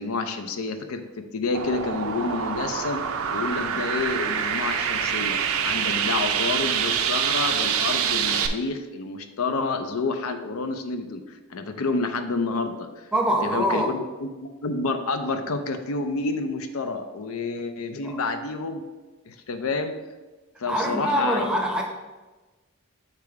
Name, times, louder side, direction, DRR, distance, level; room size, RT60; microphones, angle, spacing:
voice 1, 0.0-13.1 13.4-18.8 19.3-20.0 20.6-21.4, left 3 dB, 75° left, 8 dB, 0.5 m, -29 dB
sound 1, 1.5-8.5, right 7 dB, 70° right, 0.5 m, -26 dB
voice 2, 13.1-14.0 18.0-18.2 20.7-21.8, right 1 dB, 5° right, 1 dB, 0.6 m, -24 dB
6.7 x 3.5 x 4.7 m, 1.2 s
head